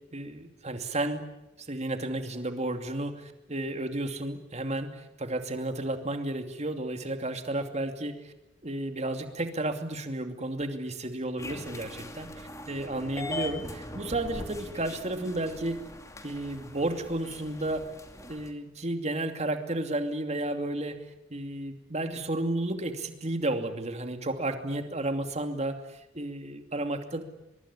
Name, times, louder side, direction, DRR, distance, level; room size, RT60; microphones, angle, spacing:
voice 1, 0.1-1.2 1.6-8.3 8.6-15.8 16.2-17.8 18.3-21.0 21.3-27.2, right 1 dB, 35° right, 6 dB, 2.7 m, -32 dB
sound 1, 11.4-18.5, left 1 dB, 15° left, 2.6 m, -41 dB
23.5 x 22.5 x 9.8 m, 0.94 s
head